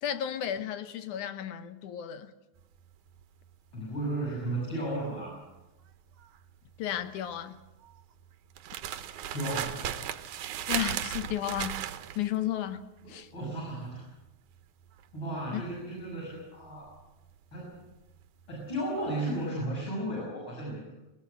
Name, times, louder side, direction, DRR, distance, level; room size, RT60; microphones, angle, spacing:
voice 1, 0.0-2.3 6.8-7.6 10.7-11.8 12.2-12.8 13.1-13.3 15.5-15.6, left 11 dB, 85° left, 11 dB, 2.5 m, -33 dB
sound 1, 2.6-18.8 19.0-19.4, right 10 dB, 85° right, 2.4 m, -38 dB
voice 2, 3.7-5.4 8.9-10.0 13.0-14.1 15.1-16.9 17.5-17.9 18.5-20.9, right 1 dB, 40° left, -5 dB, 7.6 m, -35 dB
20.0 x 19.0 x 7.7 m, 1.0 s
omnidirectional pair, 3.4 m